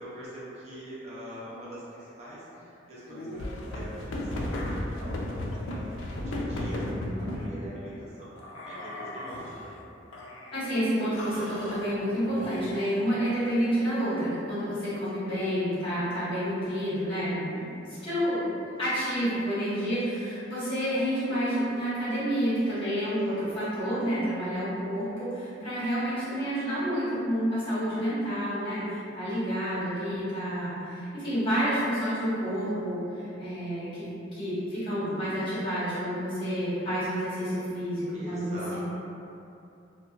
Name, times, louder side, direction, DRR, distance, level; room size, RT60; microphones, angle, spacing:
voice 1, 0.0-6.8 7.2-8.3 8.6-9.7 14.6-15.0 18.0-18.5 23.2-23.5 29.7-30.0 38.1-38.8, equal, 35° right, -10 dB, 0.6 m, -44 dB
sound 1, 3.1-7.5 8.4-9.7 10.1-10.7 11.1-13.0, left 1 dB, 90° left, 0.4 m, -35 dB
voice 2, 6.8-7.2 10.5-18.5 18.8-38.8, equal, 30° left, -14 dB, 1.2 m, -29 dB
2.8 x 2.6 x 2.2 m, 2.7 s
head